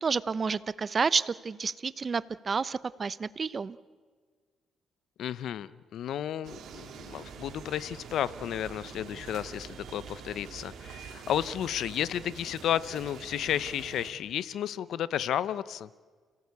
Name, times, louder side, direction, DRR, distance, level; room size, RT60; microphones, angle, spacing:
voice 1, 0.0-3.8, right 5 dB, 40° right, 17 dB, 0.8 m, -30 dB
voice 2, 5.2-15.9, left 10 dB, 75° left, 17 dB, 0.7 m, -32 dB
sound 1, 6.4-14.1, right 6 dB, 75° right, 3.5 m, -45 dB
29.5 x 18.0 x 8.3 m, 1.5 s
cardioid pair, 90°, 0 cm